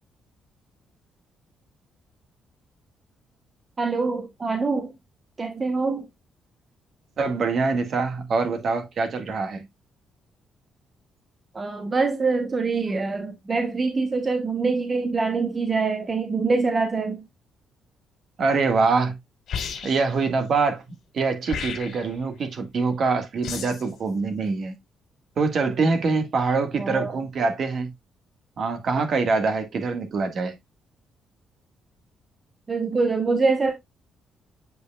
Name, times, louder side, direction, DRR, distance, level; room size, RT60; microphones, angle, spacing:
voice 1, 3.8-4.9 5.4-6.1 11.5-17.2 26.8-27.2 32.7-33.7, right 4 dB, 30° right, 1.0 m, -24 dB
voice 2, 7.2-9.7 18.4-19.2 19.8-20.8 21.1-24.7 25.4-27.9 28.6-30.5, right 4 dB, 55° right, 1.5 m, -24 dB
sound 1, 19.5-20.2 21.5-22.2 23.4-23.9, left 6 dB, 70° left, 2.4 m, -33 dB
7.9 x 5.5 x 2.2 m
cardioid pair, 90°, 0 cm